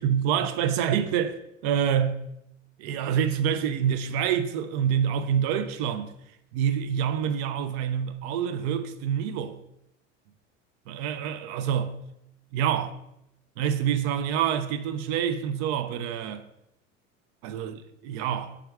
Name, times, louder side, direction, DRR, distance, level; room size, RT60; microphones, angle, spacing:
voice 1, 0.0-2.2 2.8-6.1 6.5-9.6 10.9-12.0 12.5-13.0 13.6-16.4 17.4-18.5, right 8 dB, 60° right, 0.5 m, -27 dB
3.5 x 3.3 x 3.2 m
hypercardioid pair, 75°, 36 cm